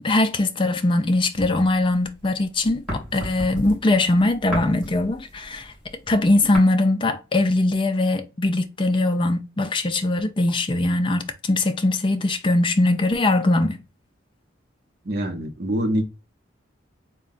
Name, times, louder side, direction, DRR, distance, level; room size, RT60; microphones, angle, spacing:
voice 1, 0.0-5.7 6.1-13.8, left 2 dB, 25° left, 0.4 m, -21 dB
sound 1, 1.3-2.3 2.6-6.6, equal, ahead, 2.0 m, -33 dB
voice 2, 15.0-16.0, equal, 50° right, 0.7 m, -24 dB
3.6 x 2.2 x 3.9 m
head